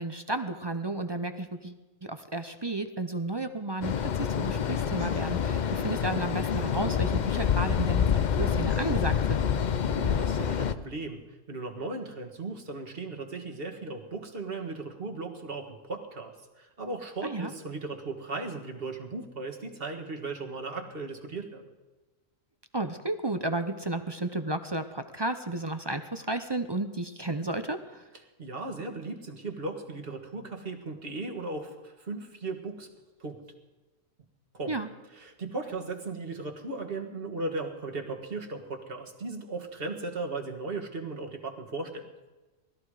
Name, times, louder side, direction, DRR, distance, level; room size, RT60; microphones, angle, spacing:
voice 1, 0.0-9.4 17.2-17.5 22.7-28.0 34.7-34.9, right 2 dB, 30° right, 9 dB, 0.5 m, -33 dB
sound 1, 3.8-10.7, left 8 dB, 50° left, 0.6 m, -27 dB
voice 2, 9.8-11.2 11.5-21.7 28.4-32.9 33.2-33.4 34.5-34.8 35.1-42.1, right 3 dB, 45° right, 3 dB, 1.9 m, -37 dB
20.0 x 13.5 x 4.9 m, 1.2 s
omnidirectional pair, 1.4 m